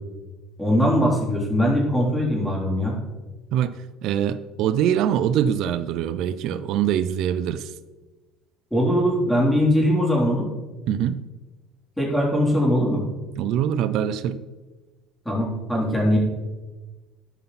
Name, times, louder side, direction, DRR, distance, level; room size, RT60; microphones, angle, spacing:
voice 1, 0.6-2.9 8.7-10.5 12.0-13.0 15.3-16.2, equal, 5° left, -4 dB, 3.6 m, -21 dB
voice 2, 4.0-7.7 10.9-11.2 13.4-14.4, right 9 dB, 65° right, 13 dB, 0.6 m, -23 dB
13.0 x 5.6 x 4.2 m, 1.2 s
cardioid pair, 110°, 0 cm